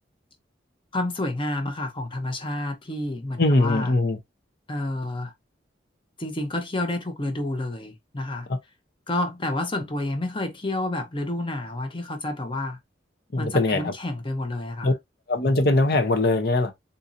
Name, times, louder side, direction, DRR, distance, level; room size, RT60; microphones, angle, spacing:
voice 1, 0.9-3.9 4.7-5.3 6.2-8.5 9.1-12.8 13.4-14.9, left 1 dB, 30° left, 0.8 m, -29 dB
voice 2, 3.4-4.2 13.3-13.9 14.8-14.9 15.3-16.7, left 2 dB, 60° left, 0.8 m, -21 dB
3.9 x 2.7 x 2.6 m
head